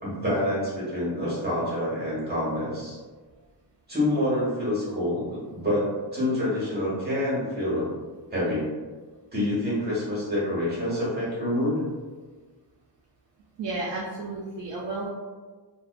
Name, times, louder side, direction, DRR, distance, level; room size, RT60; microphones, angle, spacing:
voice 1, 0.0-3.0 3.9-7.9 8.3-8.6 9.3-11.9, left 1 dB, 20° right, -8 dB, 1.1 m, -27 dB
voice 2, 13.6-15.1, right 2 dB, 70° right, -4 dB, 0.5 m, -32 dB
2.4 x 2.2 x 2.3 m, 1.4 s
wide cardioid pair, 130°, 45 cm